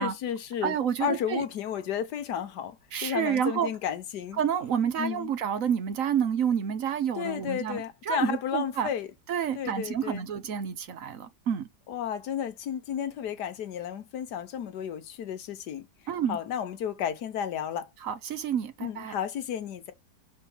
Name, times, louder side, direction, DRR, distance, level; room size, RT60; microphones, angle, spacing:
voice 1, 0.0-2.8 3.0-4.4 5.0-5.3 7.2-9.1 9.5-10.2 11.9-15.9 16.3-17.9 18.8-19.9, left 9 dB, 70° left, 1.5 m, -32 dB
voice 2, 0.6-1.4 2.9-3.7 4.4-8.9 9.3-11.7 16.1-16.4 18.0-19.1, right 8 dB, 60° right, 1.0 m, -29 dB
5.8 x 4.3 x 5.5 m
omnidirectional pair, 1.9 m